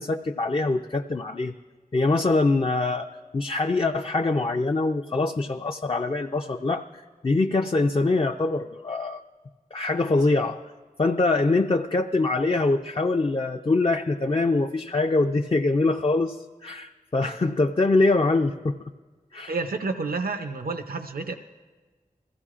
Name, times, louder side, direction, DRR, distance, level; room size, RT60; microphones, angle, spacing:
voice 1, 0.0-1.5 1.9-3.1 3.3-9.2 9.7-10.6 11.0-16.4 16.6-18.9 19.3-19.6, left 3 dB, 35° left, 3 dB, 0.4 m, -24 dB
voice 2, 19.5-21.3, right 3 dB, 80° right, 6 dB, 0.6 m, -29 dB
21.5 x 15.0 x 2.5 m, 1.3 s
wide cardioid pair, 55°, 15 cm